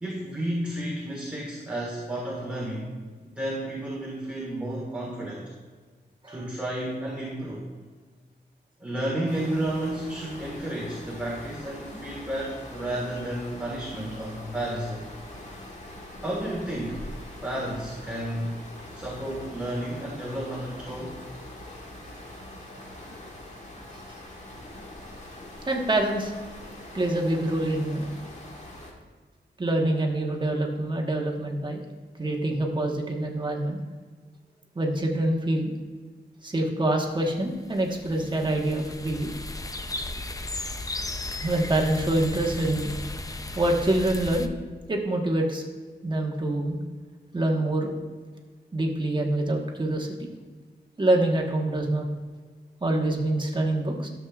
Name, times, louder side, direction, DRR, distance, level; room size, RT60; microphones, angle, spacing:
voice 1, 0.0-2.9 3.3-5.5 6.3-7.7 8.8-15.1 16.2-17.0 17.4-18.6 18.9-21.2, right 1 dB, 5° right, -4 dB, 1.6 m, -32 dB
sound 1, 9.3-28.9, left 1 dB, 40° left, 1.6 m, -43 dB
voice 2, 25.7-26.3 26.9-28.1 29.6-31.8 32.2-33.8 34.7-35.7 36.4-39.3 41.4-42.9 43.5-44.5 44.9-45.6 46.0-46.8 47.3-47.9 48.7-50.3 51.0-52.1 52.8-54.1, right 1 dB, 25° right, 1 dB, 1.2 m, -26 dB
sound 2, 37.4-44.5, left 2 dB, 20° left, 0.5 m, -35 dB
12.5 x 7.3 x 2.4 m, 1.5 s
wide cardioid pair, 135°, 18 cm